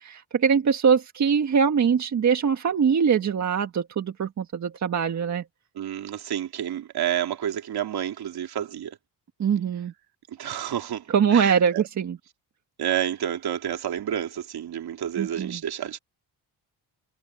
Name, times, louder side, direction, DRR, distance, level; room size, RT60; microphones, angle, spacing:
voice 1, 0.0-5.4 9.4-9.9 11.1-12.2 15.2-15.6, right 7 dB, 40° right, 1.6 m, -22 dB
voice 2, 5.7-9.0 10.3-11.8 12.8-16.0, right 10 dB, 60° right, 3.0 m, -30 dB
cardioid pair, 155°, 42 cm